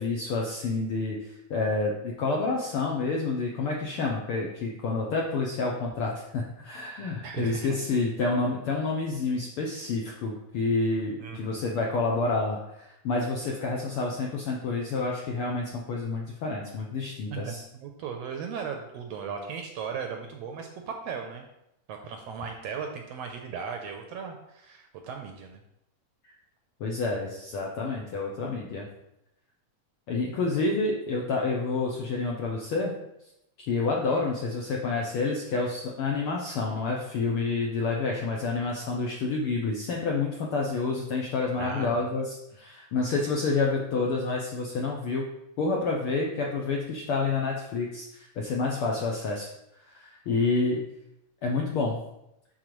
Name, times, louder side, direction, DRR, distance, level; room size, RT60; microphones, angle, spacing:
voice 1, 0.0-17.6 26.8-28.8 30.1-32.9 33.7-45.3 45.6-49.5 49.9-50.8 51.4-52.0, left 3 dB, 80° left, -1 dB, 1.3 m, -29 dB
voice 2, 7.2-7.8 11.2-11.7 17.3-21.4 21.9-25.6 34.1-34.3 41.6-42.3, right 6 dB, 75° right, 3 dB, 1.5 m, -37 dB
11.5 x 3.9 x 3.1 m, 0.85 s
omnidirectional pair, 3.3 m